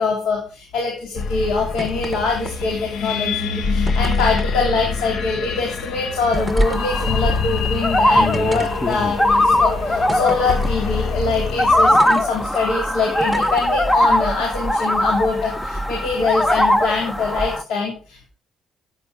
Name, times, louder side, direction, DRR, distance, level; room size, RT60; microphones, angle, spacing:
voice 1, 0.0-18.3, left 4 dB, 90° left, 0 dB, 3.6 m, -23 dB
sound 1, 1.2-11.9, left 5 dB, 70° left, 1.3 m, -26 dB
sound 2, 1.8-2.2 2.4-2.9 3.9-4.6 5.6-5.8 6.3-6.8 7.5-7.6 8.3-9.2 10.1-10.7 11.9-12.2 13.2-13.7 14.7-14.9, right 2 dB, 15° right, 1.6 m, -33 dB
sound 3, 6.3-17.6, left 1 dB, 15° left, 1.2 m, -20 dB
12.5 x 9.3 x 5.2 m, 0.36 s
cardioid pair, 90°, 0 cm